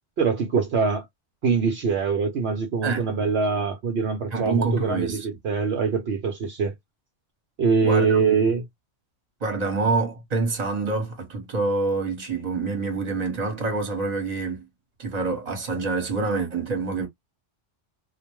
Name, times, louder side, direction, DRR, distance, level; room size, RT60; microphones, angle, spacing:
voice 1, 0.2-1.0 1.4-6.7 7.6-8.6, right 5 dB, 65° right, 0.9 m, -23 dB
voice 2, 4.3-5.3 7.8-8.2 9.4-14.6 15.0-17.1, right 3 dB, 35° right, 1.1 m, -26 dB
2.5 x 2.1 x 3.0 m
omnidirectional pair, 1.2 m